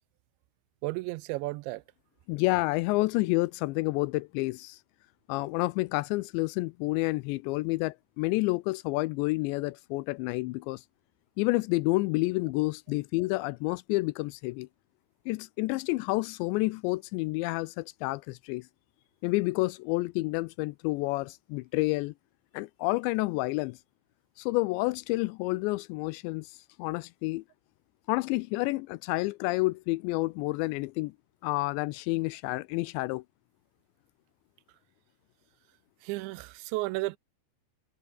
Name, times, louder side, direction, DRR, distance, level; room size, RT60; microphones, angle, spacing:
voice 1, 0.8-1.8 36.0-37.2, right 21 dB, 85° right, 2.8 m, -33 dB
voice 2, 2.3-4.8 5.3-10.8 11.4-14.7 15.3-18.7 19.2-22.1 22.5-23.8 24.4-27.4 28.1-31.1 31.4-33.2, left 22 dB, 85° left, 2.7 m, -29 dB
omnidirectional pair, 5.3 m